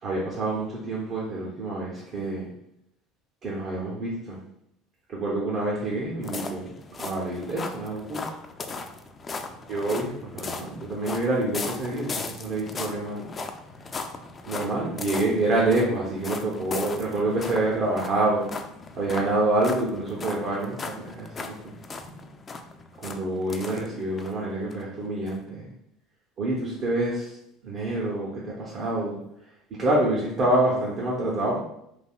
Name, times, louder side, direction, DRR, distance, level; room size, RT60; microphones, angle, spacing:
voice 1, 0.0-2.5 3.4-4.4 5.1-8.3 9.7-13.3 14.5-18.5 19.0-21.5 23.0-25.7 26.4-27.4 27.6-29.2 29.8-31.6, right 2 dB, 50° right, -5 dB, 0.7 m, -27 dB
sound 1, 6.2-24.3 24.7-24.8 25.3-25.4, left 3 dB, 30° left, 0.3 m, -37 dB
3.3 x 2.6 x 2.3 m, 0.77 s
hypercardioid pair, 70°, 0 cm